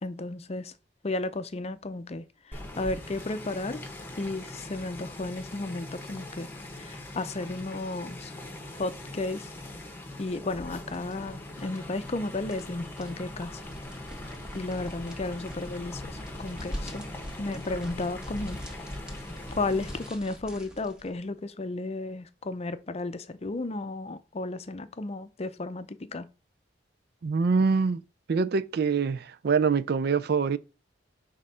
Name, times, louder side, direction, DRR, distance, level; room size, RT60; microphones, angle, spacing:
voice 1, 0.0-0.7 1.0-3.9 4.2-6.5 6.7-8.3 8.7-9.5 10.2-13.6 14.5-17.1 17.4-18.8 19.5-26.3, left 2 dB, 35° left, 0.6 m, -34 dB
sound 1, 2.5-20.1, left 1 dB, 15° left, 1.2 m, -42 dB
sound 2, 10.7-21.1, equal, 5° right, 1.5 m, -43 dB
voice 2, 27.2-28.0 28.3-30.6, right 5 dB, 60° right, 0.4 m, -24 dB
6.3 x 3.7 x 5.5 m
head